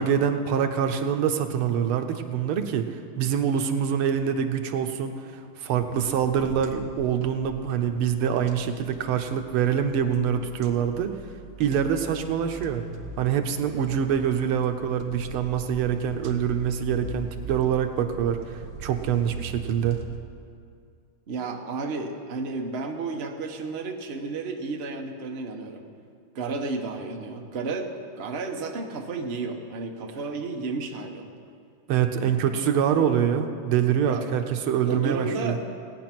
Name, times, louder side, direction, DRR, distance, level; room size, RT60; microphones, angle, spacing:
voice 1, 0.0-2.9 3.2-5.1 5.6-11.1 11.6-12.8 13.2-20.0 31.9-35.6, right 8 dB, 90° right, 6 dB, 1.7 m, -25 dB
sound 1, 5.7-20.2, right 3 dB, 60° right, 1.5 m, -41 dB
voice 2, 21.3-25.8 26.3-31.3 34.1-34.3 34.9-35.6, right 3 dB, 40° right, 2 dB, 1.0 m, -32 dB
17.5 x 9.4 x 6.0 m, 2.3 s
omnidirectional pair, 2.3 m